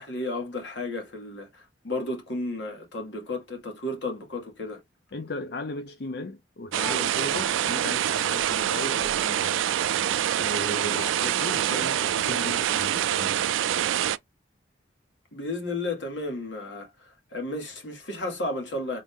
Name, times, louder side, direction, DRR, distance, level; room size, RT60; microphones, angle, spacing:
voice 1, 0.0-4.8 15.3-19.0, left 2 dB, 75° left, 1.7 m, -33 dB
voice 2, 5.1-9.7 10.4-13.5, left 2 dB, 55° left, 0.5 m, -36 dB
sound 1, 6.7-14.2, right 11 dB, 90° right, 0.3 m, -26 dB
Bowed string instrument, 6.8-13.0, equal, ahead, 0.7 m, -44 dB
3.8 x 2.5 x 3.6 m
head